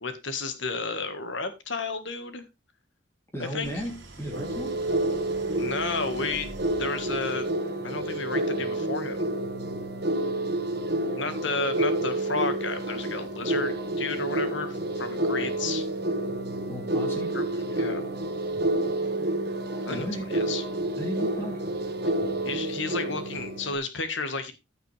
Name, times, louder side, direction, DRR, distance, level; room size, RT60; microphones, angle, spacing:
voice 1, 0.0-2.4 3.5-3.8 5.6-6.5 6.8-7.5 7.8-9.3 11.2-15.8 17.3-18.0 19.8-20.6 22.4-24.5, left 3 dB, 65° left, 9 dB, 1.6 m, -32 dB
voice 2, 3.3-4.7 16.7-17.3 19.9-20.5 21.0-21.6, equal, 15° left, 0 dB, 2.9 m, -35 dB
Idling, 3.6-7.9, right 2 dB, 70° right, 3.2 m, -47 dB
sound 1, 4.3-23.7, right 1 dB, 55° right, 1.6 m, -29 dB
14.5 x 5.9 x 3.3 m, 0.24 s
head